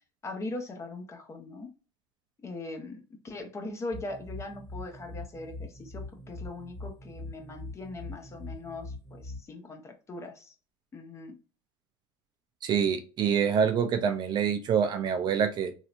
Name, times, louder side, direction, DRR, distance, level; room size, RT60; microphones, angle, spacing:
voice 1, 0.2-1.7 2.4-10.5 10.9-11.4, left 2 dB, 25° left, 4 dB, 0.9 m, -40 dB
sound 1, 3.9-9.4, left 2 dB, 5° right, 1.1 m, -42 dB
voice 2, 12.6-15.7, right 7 dB, 40° right, 8 dB, 0.5 m, -26 dB
3.2 x 2.7 x 2.4 m, 0.34 s
supercardioid pair, 110°, 12 cm